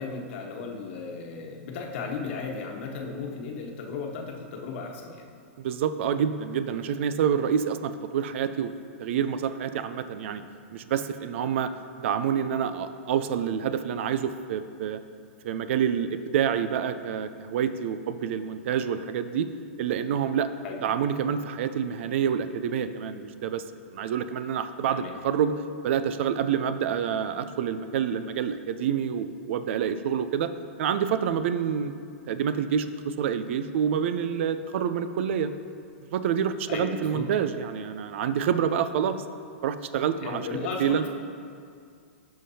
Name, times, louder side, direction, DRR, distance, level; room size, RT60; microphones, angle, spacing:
voice 1, 0.0-5.2 10.4-10.5 20.6-20.8 24.9-25.1 36.7-37.3 38.0-38.1 40.2-41.1, left 4 dB, 60° left, 2 dB, 1.2 m, -35 dB
voice 2, 5.6-8.7 9.0-10.4 10.7-11.7 12.0-15.0 15.4-19.5 19.8-20.5 20.8-23.6 23.9-25.5 25.8-30.5 30.8-35.5 36.1-39.2 39.6-40.4 40.8-41.0, right 8 dB, 60° right, 11 dB, 0.5 m, -27 dB
15.5 x 5.8 x 2.8 m, 2.3 s
hypercardioid pair, 125°, 7 cm